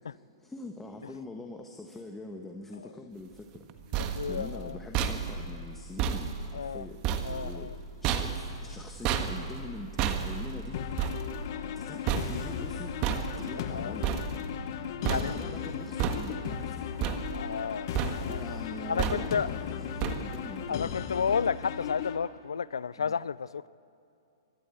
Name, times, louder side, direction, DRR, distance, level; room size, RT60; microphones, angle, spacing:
voice 1, 0.1-3.6 4.3-7.0 7.3-10.8 11.7-14.2 15.0-16.9 17.2-17.4 18.3-20.9 23.0-23.1, left 2 dB, 10° left, 2 dB, 1.3 m, -43 dB
sound 1, 3.6-14.8 15.0-15.7 16.0-16.6 17.0-17.7 17.9-18.5 19.0-19.5 20.0-20.5, right 8 dB, 40° right, 1.6 m, -33 dB
voice 2, 3.9-4.8 6.5-6.8 7.2-7.8 13.7-14.0 15.1-15.4 17.3-18.4 18.9-19.5 20.7-23.7, left 6 dB, 85° left, 21 dB, 0.4 m, -32 dB
sound 2, 10.7-22.2, left 8 dB, 55° left, 1.3 m, -36 dB
24.0 x 13.0 x 8.4 m, 2.6 s
hypercardioid pair, 120°, 2 cm